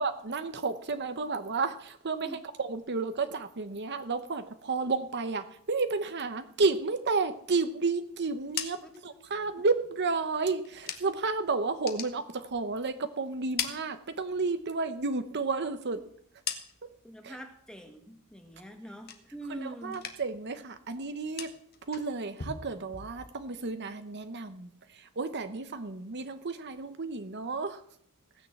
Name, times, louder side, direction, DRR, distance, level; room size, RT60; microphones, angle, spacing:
voice 1, 0.0-8.8 9.0-16.0 17.2-17.4 19.5-21.5 21.9-27.8, right 4 dB, 50° right, 9 dB, 0.9 m, -32 dB
sound 1, 8.2-11.3 11.7-13.0 13.3-14.6 15.0-17.1 17.5-17.9 18.3-19.6 19.9-20.5 20.7-23.6, left 7 dB, 45° left, 1.5 m, -42 dB
voice 2, 8.8-9.2 16.0-16.1 17.0-20.0, right 1 dB, 5° left, 5 dB, 1.7 m, -44 dB
17.5 x 6.8 x 7.6 m, 0.66 s
head